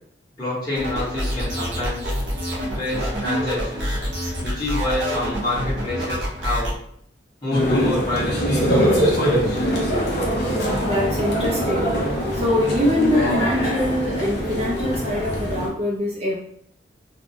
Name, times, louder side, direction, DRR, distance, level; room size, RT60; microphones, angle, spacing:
voice 1, 0.4-2.2 2.7-4.0 4.4-6.7 7.4-9.6, left 2 dB, 20° left, -9 dB, 1.2 m, -27 dB
sound 1, 0.7-6.7, equal, 70° right, 0.7 m, -27 dB
sound 2, 7.5-15.7, equal, 60° left, 0.6 m, -22 dB
voice 2, 10.8-11.9 12.3-16.3, left 1 dB, 35° right, -3 dB, 0.4 m, -23 dB
2.6 x 2.1 x 2.7 m, 0.68 s
head